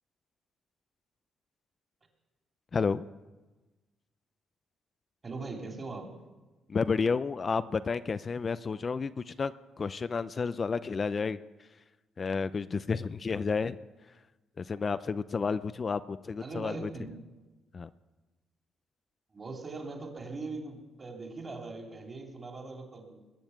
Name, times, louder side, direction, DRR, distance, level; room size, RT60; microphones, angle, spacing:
voice 1, 2.7-3.0 6.7-9.5 9.8-11.4 12.2-13.8 14.6-16.9 17.7-17.9, left 5 dB, 35° left, 13 dB, 0.4 m, -31 dB
voice 2, 5.2-6.1 16.4-17.2 19.3-23.2, right 3 dB, 30° right, 1 dB, 3.3 m, -41 dB
21.0 x 7.1 x 8.0 m, 1.2 s
cardioid pair, 90°, 0 cm